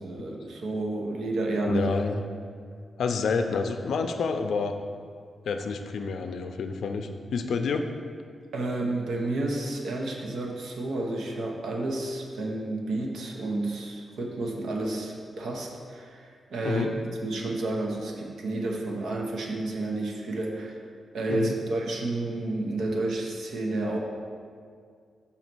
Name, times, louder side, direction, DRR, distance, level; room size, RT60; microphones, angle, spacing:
voice 1, 0.0-1.9 8.5-16.9 17.2-20.9 21.1-24.0, right 2 dB, 90° right, 0 dB, 0.9 m, -30 dB
voice 2, 1.7-2.2 3.0-4.7 5.5-7.9 16.6-16.9 21.3-21.5, left 5 dB, 75° left, 6 dB, 0.4 m, -28 dB
5.7 x 4.0 x 6.1 m, 2.1 s
wide cardioid pair, 170°, 0 cm